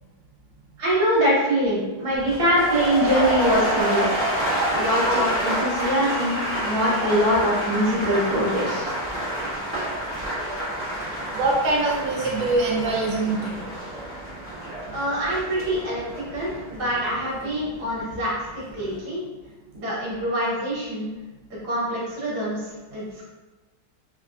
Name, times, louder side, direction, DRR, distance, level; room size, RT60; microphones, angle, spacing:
voice 1, 0.8-4.1 4.7-8.9 14.9-19.2 19.7-21.1 21.6-23.0, equal, 60° right, -6 dB, 1.6 m, -24 dB
sound 1, 2.2-18.2 18.5-19.0, right 1 dB, 10° left, 0.9 m, -28 dB
voice 2, 11.0-13.8 14.9-15.0 18.8-18.9, right 2 dB, 90° right, -2 dB, 1.3 m, -24 dB
4.1 x 2.3 x 2.4 m, 1.2 s
omnidirectional pair, 2.0 m